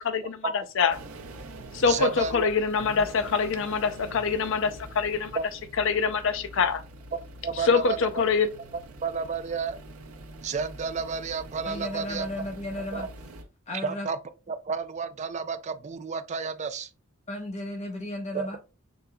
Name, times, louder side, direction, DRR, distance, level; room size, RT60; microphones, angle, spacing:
voice 1, 0.0-1.0 1.7-5.4 5.8-6.8 7.5-8.5, left 5 dB, 65° left, 0.5 m, -25 dB
sound 1, 0.9-13.4, right 1 dB, 80° right, 0.8 m, -45 dB
voice 2, 1.8-2.5 5.3-5.4 7.1-8.1 9.0-9.8 10.4-12.3 12.9-13.1 13.8-14.2 14.5-16.9 18.3-18.6, right 5 dB, 35° right, 0.4 m, -31 dB
voice 3, 11.6-13.1 13.7-14.1 17.3-18.6, left 1 dB, 35° left, 0.9 m, -34 dB
5.1 x 3.4 x 2.2 m
head